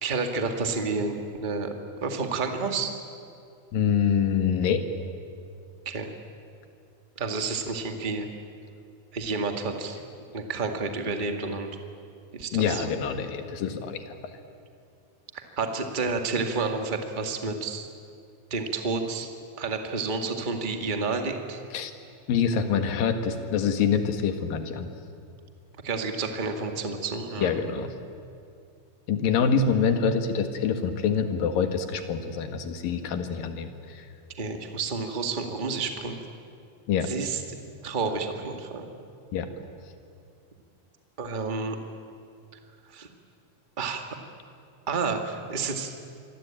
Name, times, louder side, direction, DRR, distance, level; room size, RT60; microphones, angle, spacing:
voice 1, 0.0-1.1 1.4-1.7 2.0-3.0 5.8-6.1 7.1-8.3 9.1-10.0 10.3-11.7 12.3-12.9 15.3-17.9 18.5-19.3 19.6-21.6 25.8-27.6 34.4-36.2 37.0-37.4 37.8-38.8 41.2-41.8 42.9-43.1 43.8-44.1 44.9-45.9, right 4 dB, 20° right, 5 dB, 1.2 m, -30 dB
voice 2, 3.7-4.8 12.5-14.0 21.7-21.9 22.3-24.9 27.4-27.9 29.1-33.7 34.0-34.1 36.9-37.1 39.3-39.5, left 6 dB, 70° left, 8 dB, 3.3 m, -25 dB
27.0 x 23.0 x 8.9 m, 2.4 s
omnidirectional pair, 4.2 m